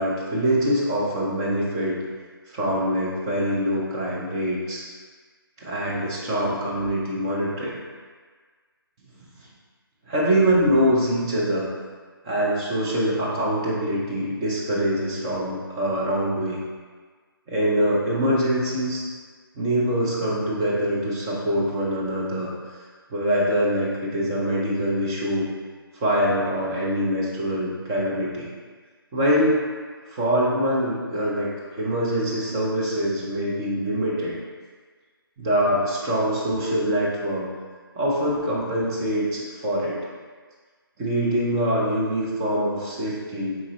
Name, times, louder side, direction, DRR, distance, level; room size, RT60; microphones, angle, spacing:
voice 1, 0.0-2.0 2.5-4.8 5.6-7.8 10.1-11.7 12.2-16.6 17.5-19.0 19.6-22.5 23.1-25.5 25.9-28.5 29.1-29.6 30.0-31.5 31.8-34.4 35.4-37.5 38.0-40.0 41.0-43.6, equal, 10° right, -5 dB, 0.4 m, -24 dB
3.8 x 3.7 x 3.0 m, 1.5 s
figure-of-eight pair, 165°, 13 cm